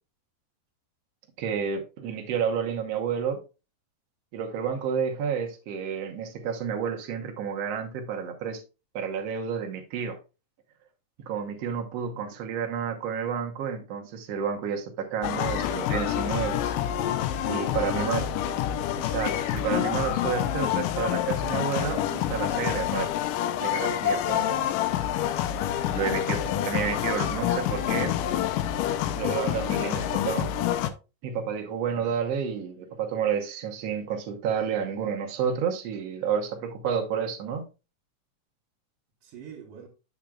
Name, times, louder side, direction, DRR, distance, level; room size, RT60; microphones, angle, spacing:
voice 1, 1.4-3.4 4.3-8.6 8.9-10.2 11.3-16.8 17.5-18.3 19.0-23.1 23.6-24.7 25.9-28.2 29.1-30.5 31.2-37.7, right 7 dB, 60° right, 1.9 m, -30 dB
sound 1, 15.2-30.9, left 11 dB, 80° left, 2.2 m, -27 dB
voice 2, 17.6-18.6 31.9-32.2 39.2-39.9, right 6 dB, 80° right, 2.9 m, -44 dB
8.9 x 7.4 x 2.4 m
omnidirectional pair, 3.9 m